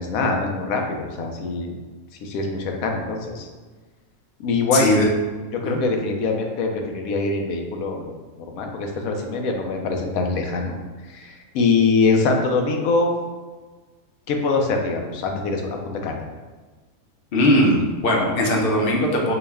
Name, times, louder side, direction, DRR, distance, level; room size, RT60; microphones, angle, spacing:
voice 1, 0.0-1.7 2.2-3.5 4.4-4.9 5.6-8.1 8.4-10.8 11.1-13.2 14.3-16.2, left 3 dB, 80° left, 2 dB, 1.0 m, -23 dB
voice 2, 4.7-5.1 5.6-5.8 17.3-19.3, left 1 dB, 55° left, -1 dB, 0.7 m, -19 dB
4.5 x 2.1 x 3.4 m, 1.3 s
omnidirectional pair, 1.5 m